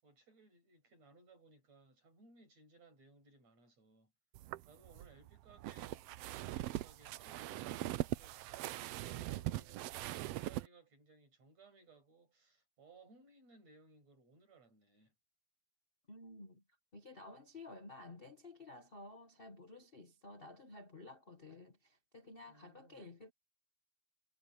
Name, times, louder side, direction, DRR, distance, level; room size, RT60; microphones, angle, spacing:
voice 1, 0.0-4.1 4.7-8.5 8.9-15.1 22.5-23.0, right 3 dB, 60° right, 8.5 m, -63 dB
sound 1, 4.3-10.7, right 15 dB, 80° right, 1.4 m, -41 dB
voice 2, 16.1-16.6 16.9-23.3, left 2 dB, 40° left, 0.7 m, -53 dB
omnidirectional pair, 3.4 m